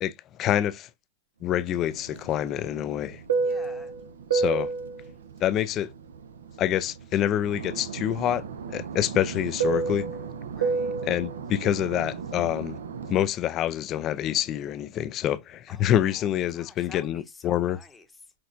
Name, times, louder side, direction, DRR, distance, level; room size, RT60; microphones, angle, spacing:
voice 1, 0.0-0.9 1.4-3.2 4.3-4.7 5.4-5.9 6.6-10.1 11.1-12.8 13.1-17.8, left 11 dB, 35° left, 0.3 m, -26 dB
Fixed-wing aircraft airplane, 1.7-7.1 7.4-13.2, right 4 dB, 90° right, 0.6 m, -31 dB
voice 2, 3.4-3.9 10.5-10.9 15.7-18.3, left 3 dB, 10° left, 0.8 m, -50 dB
5.9 x 2.5 x 2.5 m
hypercardioid pair, 135°, 0 cm